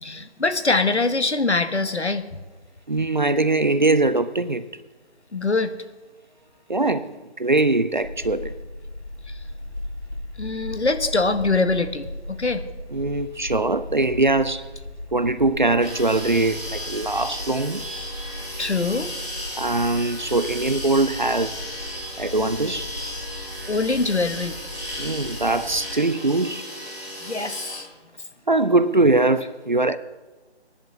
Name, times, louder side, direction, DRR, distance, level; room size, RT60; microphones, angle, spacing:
voice 1, 0.0-2.3 5.3-5.7 10.4-12.6 18.6-19.1 23.7-24.6 27.2-27.9, left 3 dB, 80° left, 1.1 m, -23 dB
voice 2, 2.9-4.7 6.7-8.6 12.9-14.7 15.1-17.9 19.6-21.6 22.2-22.9 25.0-26.6 28.5-30.0, right 2 dB, 45° right, 0.5 m, -22 dB
sound 1, 8.0-25.9, left 1 dB, 20° left, 2.4 m, -37 dB
sound 2, 15.8-27.8, left 1 dB, ahead, 1.8 m, -35 dB
22.0 x 11.0 x 2.8 m
figure-of-eight pair, 155°, 33 cm